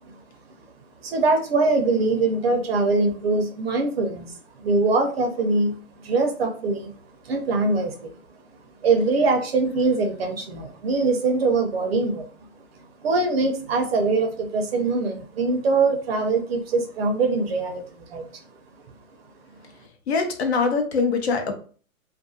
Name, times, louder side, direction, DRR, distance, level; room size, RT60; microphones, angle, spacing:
voice 1, 1.0-5.8 6.0-6.9 7.2-8.1 8.8-12.3 13.0-18.3, right 3 dB, 45° right, 4 dB, 0.6 m, -23 dB
voice 2, 20.1-21.5, left 4 dB, 50° left, 5 dB, 0.6 m, -23 dB
2.4 x 2.3 x 2.6 m, 0.41 s
hypercardioid pair, 155°, 42 cm